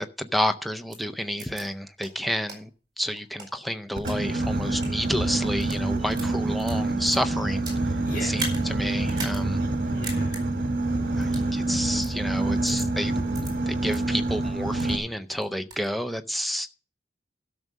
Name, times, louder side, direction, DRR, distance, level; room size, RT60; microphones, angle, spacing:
voice 1, 0.0-2.7 3.0-7.6 8.2-9.6 11.1-13.1 13.7-16.7, equal, ahead, 0.5 m, -30 dB
sound 1, 0.9-1.0 1.4-1.6 2.0-2.1 2.5-2.6 3.1-4.2 4.7-4.9 5.5-5.8 6.1-7.8 8.3-8.6 9.1-9.4 9.7-9.8 10.0-10.4 11.2-11.5 12.0-12.1 12.7-12.8 13.3-13.5 13.9-14.0 14.4-14.9 15.3-15.9, right 3 dB, 25° right, 4.3 m, -37 dB
Boat Water vehicle, 4.0-15.0, right 2 dB, 55° right, 1.6 m, -27 dB
voice 2, 8.0-8.5 9.6-10.4 12.5-12.8, left 1 dB, 50° left, 2.5 m, -40 dB
13.0 x 6.5 x 6.1 m
head